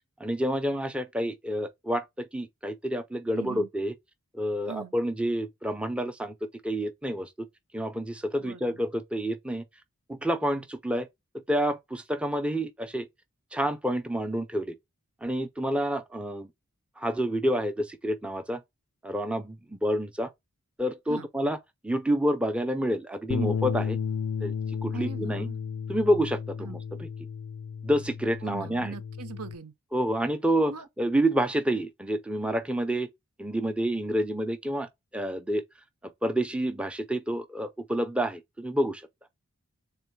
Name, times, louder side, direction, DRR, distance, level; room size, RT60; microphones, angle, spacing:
voice 1, 0.2-3.9 4.3-6.3 6.6-7.3 7.7-9.6 10.1-11.1 11.5-13.1 13.5-14.7 15.2-16.5 17.0-18.6 19.0-20.3 20.8-21.6 21.8-24.0 24.4-24.5 24.8-25.5 25.9-27.1 27.8-28.9 29.9-30.7 31.0-33.1 33.4-35.6 36.2-39.0, equal, 5° right, 0.4 m, -28 dB
voice 2, 3.3-3.7 4.7-4.9 8.4-8.8 21.1-21.3 24.9-25.6 26.6-26.8 28.4-29.7 30.7-30.9, right 6 dB, 85° right, 0.6 m, -41 dB
Bass guitar, 23.3-29.5, left 6 dB, 85° left, 0.4 m, -33 dB
3.7 x 3.1 x 4.5 m
head